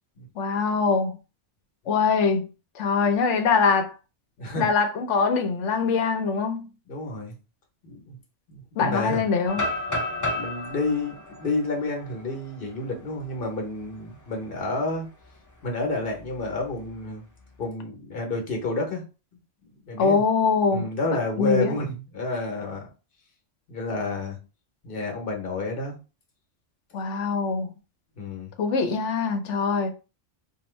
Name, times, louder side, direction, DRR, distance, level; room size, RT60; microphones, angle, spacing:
voice 1, 0.4-1.2 1.9-2.5 2.8-3.9 4.6-6.7 8.8-9.6 20.0-20.9 21.4-21.7 26.9-27.7 28.6-29.9, left 5 dB, 80° left, 0.9 m, -23 dB
voice 2, 4.4-4.7 6.9-7.3 7.8-8.2 8.5-9.2 10.3-15.1 15.6-17.2 17.6-19.0 19.9-20.2 20.7-22.9 23.7-24.4 24.8-26.0 28.2-28.5, left 2 dB, 50° left, 1.0 m, -30 dB
sound 1, 9.5-13.4 13.8-13.9 14.4-14.7 16.0-16.9, left 1 dB, 30° left, 0.3 m, -32 dB
2.8 x 2.2 x 3.1 m
omnidirectional pair, 1.2 m